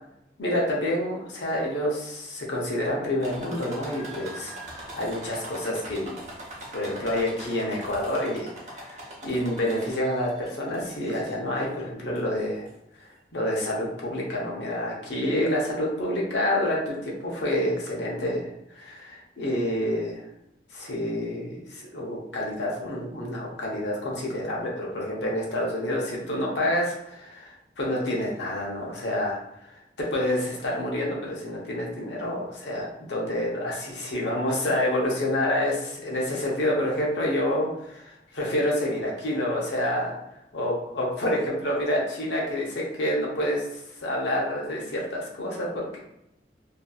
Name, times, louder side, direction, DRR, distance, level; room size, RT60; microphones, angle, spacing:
voice 1, 0.4-6.2 6.7-12.7 13.0-13.1 13.3-20.3 20.7-29.4 29.7-29.8 30.1-40.2 40.5-46.0, left 1 dB, 80° left, -3 dB, 0.7 m, -28 dB
sound 1, 3.2-10.2 10.7-11.4 12.2-12.3 12.7-12.8, right 1 dB, 40° right, 0.7 m, -41 dB
2.6 x 2.4 x 2.3 m, 0.83 s
head